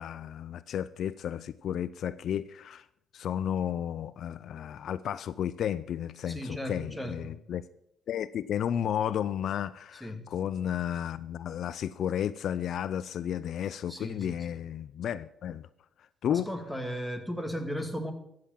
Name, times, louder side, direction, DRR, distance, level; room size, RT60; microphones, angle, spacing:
voice 1, 0.0-2.9 3.1-7.6 8.1-15.7 16.2-16.5, left 9 dB, 70° left, 0.4 m, -33 dB
voice 2, 6.3-7.4 10.0-10.3 13.9-14.6 16.3-18.1, equal, ahead, 2.0 m, -36 dB
13.0 x 7.8 x 7.2 m
cardioid pair, 90°, 0 cm